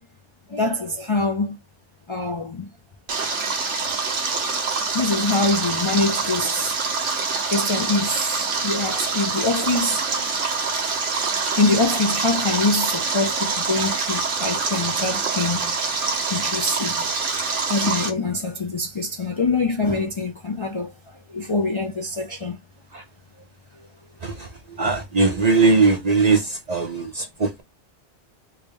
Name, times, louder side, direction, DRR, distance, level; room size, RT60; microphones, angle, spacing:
voice 1, 0.5-1.6 2.1-2.7 4.9-6.7 7.5-10.3 11.6-15.8 16.3-17.1 17.3-17.4 17.7-20.9 21.3-22.6, left 3 dB, 40° left, 0.4 m, -24 dB
Stream, 3.1-18.1, right 4 dB, 75° right, 1.2 m, -25 dB
voice 2, 24.8-27.6, right 4 dB, 40° right, 0.7 m, -20 dB
3.4 x 2.7 x 3.3 m
omnidirectional pair, 1.2 m